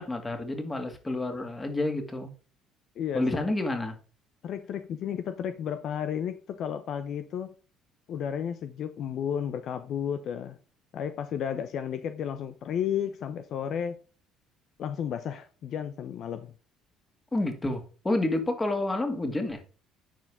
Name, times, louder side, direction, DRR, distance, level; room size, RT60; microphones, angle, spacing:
voice 1, 0.0-2.3 3.1-4.0 17.3-19.6, left 2 dB, 20° left, 2.2 m, -29 dB
voice 2, 3.0-3.3 4.4-7.5 8.1-10.6 10.9-14.0 14.8-16.5, left 8 dB, 60° left, 0.7 m, -33 dB
10.5 x 4.6 x 3.6 m
supercardioid pair, 80°, 0 cm